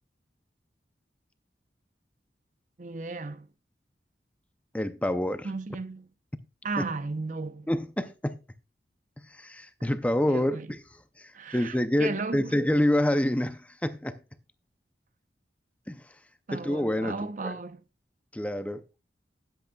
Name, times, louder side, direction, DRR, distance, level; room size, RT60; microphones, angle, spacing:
voice 1, 2.8-3.5 5.4-6.1 6.6-7.7 10.3-10.7 11.3-12.7 16.5-17.8, right 3 dB, 45° right, 0.7 m, -35 dB
voice 2, 4.7-5.5 6.8-6.9 7.7-8.4 9.3-10.8 11.2-14.2 15.9-16.0 16.5-17.5 18.3-18.8, left 1 dB, 10° left, 0.5 m, -27 dB
19.0 x 8.0 x 2.2 m
head